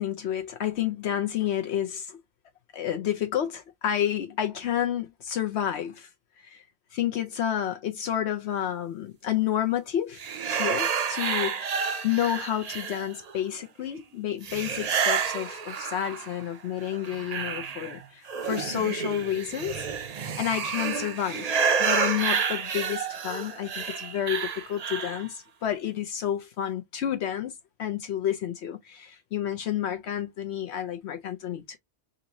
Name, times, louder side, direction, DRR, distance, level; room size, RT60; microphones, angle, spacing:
voice 1, 0.0-2.2 2.7-6.1 6.4-6.6 6.9-10.2 10.5-11.7 12.0-19.8 20.4-27.5 27.8-31.8, left 10 dB, 75° left, 0.9 m, -30 dB
sound 1, 10.2-13.3 14.4-16.4 16.8-25.3, right 6 dB, 45° right, 0.5 m, -29 dB
4.0 x 2.6 x 2.8 m
omnidirectional pair, 1.1 m